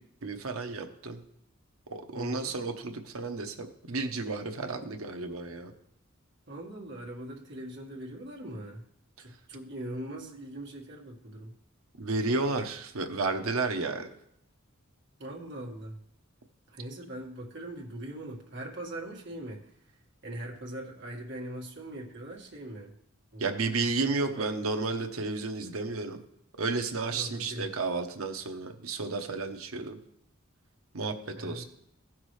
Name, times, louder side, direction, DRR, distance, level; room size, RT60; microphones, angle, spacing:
voice 1, 0.2-1.2 1.9-5.7 12.0-14.1 23.4-26.2 26.6-30.0 30.9-31.6, right 3 dB, 80° right, 5 dB, 0.9 m, -32 dB
voice 2, 2.1-2.6 6.5-8.8 9.2-11.5 15.2-16.0 16.7-19.7 20.2-22.9 23.3-23.9 24.3-24.6 27.1-27.7 31.3-31.6, right 1 dB, 55° right, -1 dB, 1.8 m, -41 dB
16.0 x 6.0 x 3.2 m, 0.74 s
head